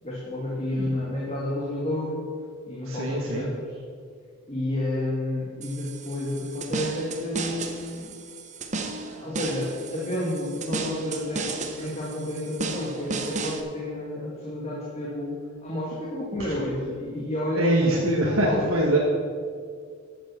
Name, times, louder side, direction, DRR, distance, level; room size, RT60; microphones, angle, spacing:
voice 1, 0.0-2.2 2.7-3.8 4.5-8.1 9.0-18.8, left 1 dB, 30° left, -5 dB, 2.2 m, -31 dB
voice 2, 2.9-3.5 17.6-19.0, right 1 dB, 85° right, -3 dB, 1.6 m, -23 dB
sound 1, 5.6-13.6, right 3 dB, 35° right, 0.9 m, -34 dB
12.5 x 7.5 x 5.8 m, 2.1 s
head